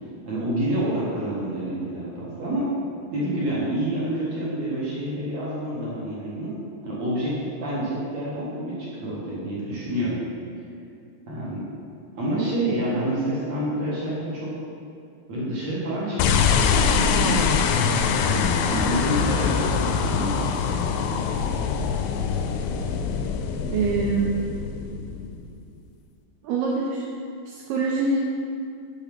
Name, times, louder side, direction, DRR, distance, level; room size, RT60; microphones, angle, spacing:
voice 1, 0.3-2.7 3.1-6.5 6.8-10.2 11.3-11.6 12.1-14.5 15.3-17.4 18.1-20.5, right 1 dB, 55° right, -7 dB, 2.0 m, -28 dB
sound 1, 16.2-25.6, left 6 dB, 85° left, 2.8 m, -23 dB
voice 2, 23.7-24.4 26.4-27.1 27.5-28.2, right 4 dB, 85° right, -3 dB, 2.3 m, -24 dB
7.1 x 6.6 x 5.3 m, 2.5 s
omnidirectional pair, 5.2 m